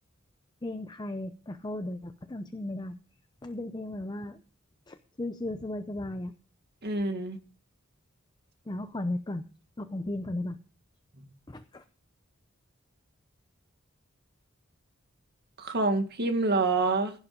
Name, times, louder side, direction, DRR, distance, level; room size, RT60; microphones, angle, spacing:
voice 1, 0.6-3.0 3.4-4.4 4.9-6.4 8.7-9.4 9.8-10.6 11.5-11.8, left 1 dB, 20° left, 0.6 m, -35 dB
voice 2, 6.8-7.4 11.2-11.3 15.6-17.1, right 3 dB, 50° right, 2.0 m, -27 dB
16.0 x 7.3 x 5.2 m
head